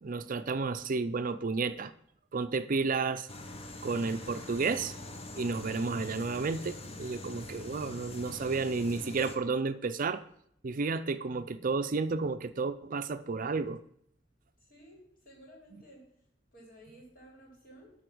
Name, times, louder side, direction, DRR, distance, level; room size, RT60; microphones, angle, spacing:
voice 1, 0.0-1.9 2.3-3.3 3.8-4.9 5.4-10.2 10.6-13.8, right 4 dB, 45° right, 12 dB, 0.5 m, -32 dB
sound 1, 3.3-9.4, left 1 dB, 30° left, 1.0 m, -44 dB
voice 2, 14.7-16.1 16.5-17.9, right 1 dB, 45° left, -2 dB, 3.8 m, -54 dB
12.0 x 4.2 x 6.1 m, 0.69 s
head